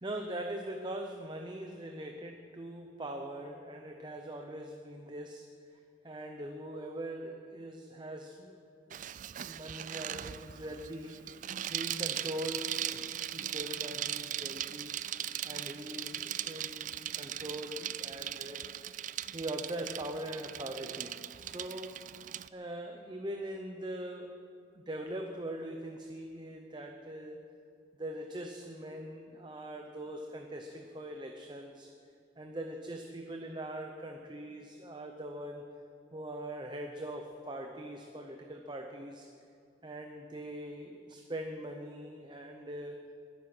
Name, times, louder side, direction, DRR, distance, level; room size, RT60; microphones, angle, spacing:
voice 1, 0.0-5.4 5.7-8.6 8.9-9.0 9.4-11.4 11.7-15.0 15.4-18.6 19.3-21.9 22.5-24.3 24.7-27.4 28.0-31.9 32.4-35.7 36.1-39.3 39.8-43.1, right 1 dB, 25° right, 3 dB, 0.8 m, -42 dB
Bicycle, 8.9-22.5, right 11 dB, 40° right, 0.3 m, -39 dB
22.0 x 9.6 x 6.1 m, 2.4 s
head